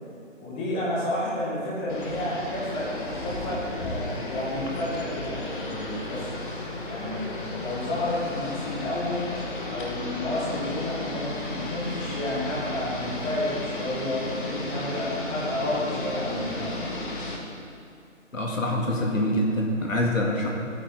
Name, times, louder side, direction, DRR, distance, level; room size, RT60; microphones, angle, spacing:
voice 1, 0.4-6.4 6.8-9.2 9.7-16.8, left 1 dB, 10° left, -7 dB, 1.3 m, -31 dB
sound 1, 1.9-17.4, left 2 dB, 40° left, 1.3 m, -34 dB
voice 2, 18.3-20.5, left 1 dB, 85° left, -1 dB, 2.1 m, -25 dB
13.0 x 8.8 x 3.7 m, 2.5 s
figure-of-eight pair, 160°, 39 cm